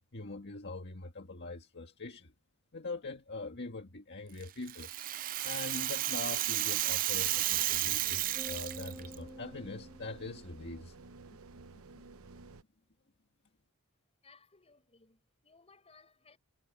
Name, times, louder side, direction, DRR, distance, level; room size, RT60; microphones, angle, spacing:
voice 1, 0.1-2.3 2.7-4.9 5.4-10.9 11.7-11.8, left 3 dB, 55° left, 1.7 m, -43 dB
Rattle (instrument), 4.4-9.1, right 14 dB, 40° right, 0.4 m, -32 dB
sound 1, 7.1-12.6, right 3 dB, 70° right, 0.9 m, -53 dB
sound 2, 8.3-10.9, equal, ahead, 1.5 m, -49 dB
voice 2, 14.2-16.4, left 4 dB, 30° left, 5.6 m, -62 dB
head